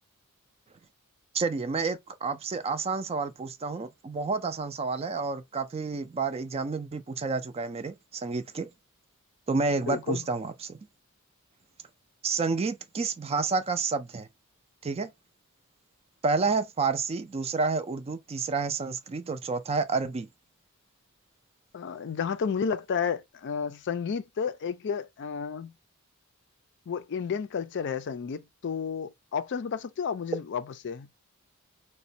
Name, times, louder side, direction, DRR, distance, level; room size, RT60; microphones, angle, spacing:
voice 1, 1.3-8.7 9.5-10.8 12.2-14.3 14.8-15.1 16.2-20.3, right 4 dB, 25° right, 0.3 m, -29 dB
voice 2, 9.9-10.2 21.7-25.7 26.9-31.1, left 6 dB, 55° left, 0.4 m, -32 dB
4.1 x 2.2 x 2.6 m
head